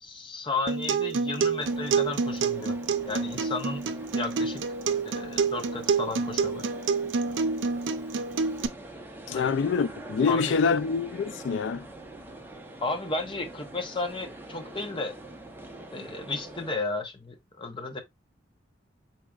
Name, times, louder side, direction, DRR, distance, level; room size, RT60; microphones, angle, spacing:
voice 1, 0.0-2.8 3.0-3.8 4.1-4.6 5.0-6.6 9.3-9.5 10.3-10.5 12.8-15.2 15.9-18.0, left 3 dB, 25° left, 0.7 m, -33 dB
Acoustic guitar, 0.7-8.7, right 5 dB, 85° right, 0.5 m, -28 dB
sound 1, 1.6-16.7, right 2 dB, 10° right, 0.7 m, -44 dB
voice 2, 9.3-11.9, left 5 dB, 75° left, 0.3 m, -26 dB
4.9 x 4.2 x 2.3 m
head